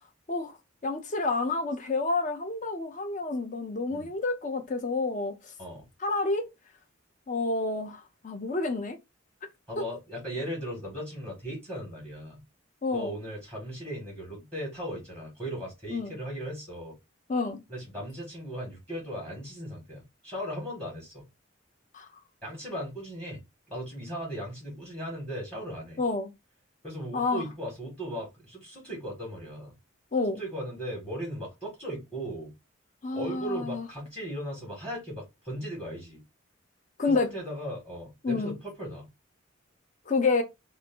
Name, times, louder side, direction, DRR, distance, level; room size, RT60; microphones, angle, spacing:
voice 1, 0.8-5.3 6.0-6.5 7.3-9.0 12.8-13.1 15.9-16.1 17.3-17.6 21.9-22.1 26.0-26.3 27.1-27.5 30.1-30.4 33.0-33.9 37.0-37.3 38.2-38.6 40.1-40.4, left 3 dB, 40° left, 0.5 m, -29 dB
voice 2, 9.7-12.4 12.9-17.0 17.7-21.2 22.4-23.4 23.7-26.0 26.8-29.7 30.4-32.5 33.1-36.2 37.0-39.1, equal, 5° left, 1.3 m, -37 dB
2.6 x 2.5 x 3.5 m
head